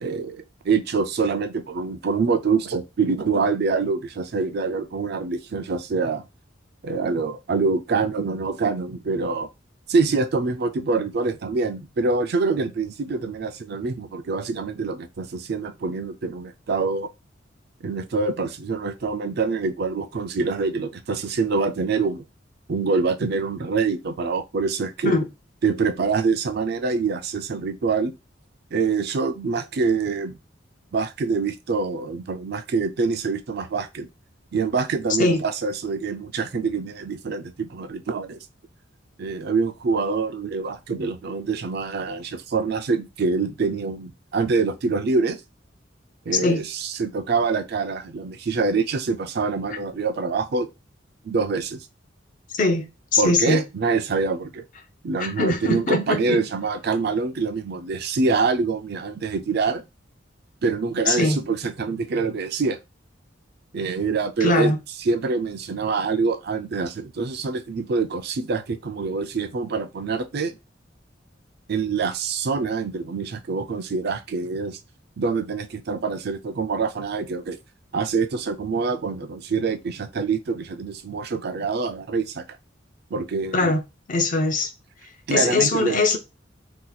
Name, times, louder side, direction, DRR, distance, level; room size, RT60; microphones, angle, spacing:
voice 1, 0.0-6.2 6.8-9.5 9.9-17.1 17.8-22.2 22.7-25.2 25.6-28.1 28.7-30.4 30.9-34.1 34.5-38.4 39.2-45.4 46.3-50.7 51.2-51.9 53.2-54.6 55.0-59.8 60.6-62.8 63.7-64.7 65.1-70.6 71.7-74.8 75.2-77.6 77.9-82.5 83.1-83.7 85.3-86.0, right 4 dB, 55° right, 0.4 m, -25 dB
voice 2, 52.5-52.9 53.1-53.6 55.2-56.4 61.1-61.4 64.4-64.8 83.5-83.8 84.1-84.7 85.3-86.2, left 2 dB, 45° left, 0.6 m, -21 dB
2.8 x 2.3 x 3.9 m
head